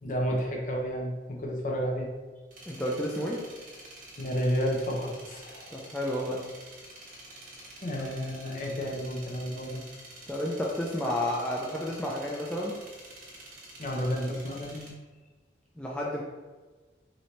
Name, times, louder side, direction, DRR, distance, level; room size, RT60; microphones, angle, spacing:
voice 1, 0.0-2.1 4.2-5.7 7.8-9.8 13.8-14.9, equal, 45° left, 0 dB, 0.6 m, -31 dB
sound 1, 2.5-14.9, right 1 dB, 45° right, 1.0 m, -49 dB
voice 2, 2.7-3.5 5.7-6.5 8.0-8.1 10.3-12.8 15.8-16.2, left 1 dB, 5° left, -4 dB, 0.3 m, -31 dB
4.2 x 2.7 x 3.2 m, 1.3 s
head